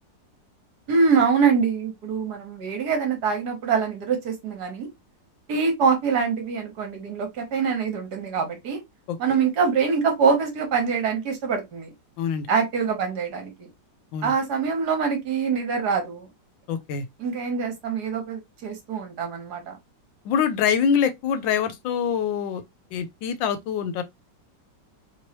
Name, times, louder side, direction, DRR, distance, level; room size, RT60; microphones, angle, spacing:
voice 1, 0.9-4.9 5.5-8.8 9.2-11.9 12.5-13.7 14.2-16.3 17.2-19.7, right 5 dB, 65° right, 1.5 m, -24 dB
voice 2, 16.7-17.0 20.3-22.6 22.9-24.0, left 7 dB, 85° left, 1.3 m, -24 dB
3.3 x 3.0 x 2.8 m
omnidirectional pair, 2.0 m